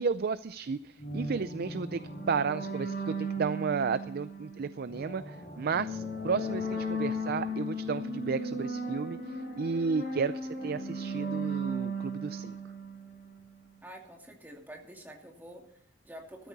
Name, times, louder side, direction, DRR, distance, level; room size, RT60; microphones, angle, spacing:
voice 1, 0.0-12.6, right 5 dB, 50° right, 14 dB, 0.4 m, -33 dB
sound 1, 1.0-13.5, right 1 dB, 50° left, 5.7 m, -36 dB
voice 2, 13.8-16.5, right 1 dB, 10° right, 1 dB, 2.5 m, -48 dB
14.0 x 13.0 x 4.1 m, 0.74 s
head